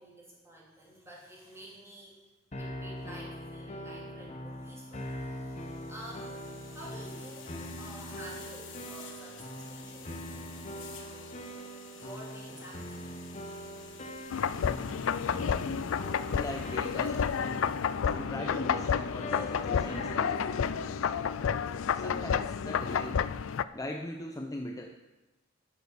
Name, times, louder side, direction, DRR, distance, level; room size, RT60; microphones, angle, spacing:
voice 1, 0.0-2.2 2.6-11.4 11.9-13.5, right 1 dB, 15° right, -5 dB, 3.4 m, -50 dB
sound 1, 2.5-21.8, equal, 35° left, 1.0 m, -42 dB
sound 2, 5.5-18.3, left 6 dB, 65° left, 1.3 m, -51 dB
sound 3, 14.3-23.6, left 7 dB, 85° left, 0.4 m, -30 dB
voice 2, 16.3-17.5 18.1-20.5 22.0-23.2 23.7-25.0, left 1 dB, 20° left, 2 dB, 0.6 m, -40 dB
10.5 x 7.1 x 6.8 m, 1.1 s
head